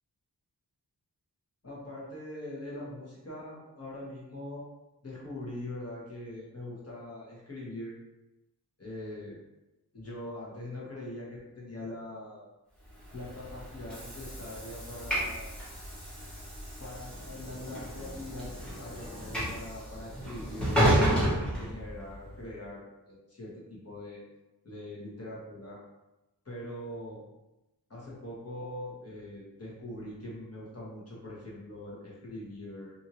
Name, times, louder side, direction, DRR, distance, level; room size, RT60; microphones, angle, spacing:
voice 1, 1.6-4.7 5.0-8.0 8.8-9.4 9.9-12.5 13.1-15.6 16.8-24.2 24.6-25.8 26.4-27.2 27.9-32.9, left 1 dB, 35° left, -5 dB, 1.1 m, -42 dB
Train / Sliding door, 13.0-22.3, equal, ahead, 1.1 m, -31 dB
2.7 x 2.6 x 2.9 m, 0.97 s
wide cardioid pair, 55°, 40 cm